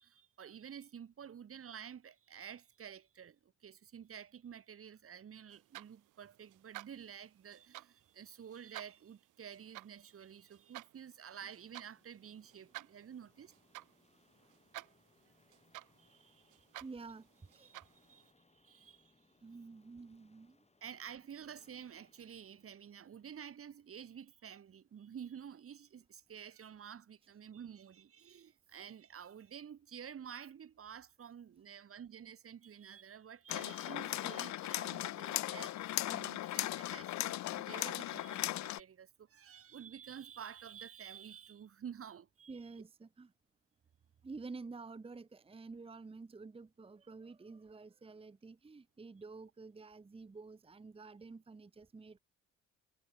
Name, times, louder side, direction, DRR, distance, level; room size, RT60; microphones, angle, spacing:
voice 1, 0.0-13.5 16.0-16.7 17.6-19.1 20.8-42.6, right 8 dB, 45° right, 1.7 m, -51 dB
sound 1, 5.5-18.3, right 17 dB, 90° right, 1.6 m, -54 dB
sound 2, 11.3-24.1, left 3 dB, 20° left, 6.9 m, -72 dB
voice 2, 16.8-17.7 19.4-20.6 42.5-43.3 44.2-52.2, right 4 dB, 20° right, 0.9 m, -50 dB
sound 3, 33.5-38.8, left 15 dB, 65° left, 0.6 m, -38 dB
cardioid pair, 90°, 30 cm